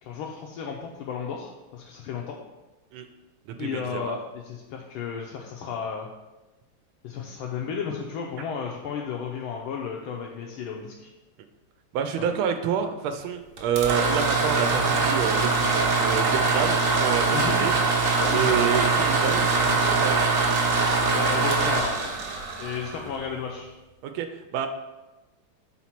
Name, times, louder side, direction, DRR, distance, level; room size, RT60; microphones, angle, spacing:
voice 1, 0.0-2.4 3.6-6.1 7.0-11.1 12.2-12.3 17.3-17.6 18.2-18.5 21.1-22.1 22.6-23.7, left 6 dB, 90° left, -1 dB, 1.5 m, -33 dB
voice 2, 3.5-4.2 11.9-17.7 18.3-20.3 24.0-24.3 24.5-24.7, right 7 dB, 90° right, 7 dB, 1.4 m, -28 dB
sound 1, 13.6-23.4, right 3 dB, 50° right, 1.1 m, -23 dB
4.4 x 4.2 x 5.7 m, 1.1 s
omnidirectional pair, 2.2 m